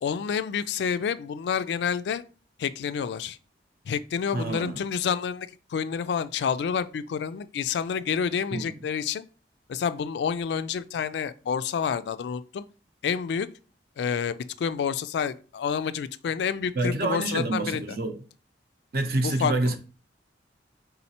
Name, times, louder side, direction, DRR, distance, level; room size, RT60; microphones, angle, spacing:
voice 1, 0.0-2.2 2.6-3.4 3.9-9.2 9.7-12.6 13.0-13.5 14.0-17.8 19.2-19.7, left 7 dB, 70° left, 0.3 m, -29 dB
voice 2, 4.3-4.8 8.5-8.7 16.7-18.2 18.9-19.8, right 2 dB, 55° right, 0.6 m, -27 dB
4.1 x 3.8 x 2.8 m
head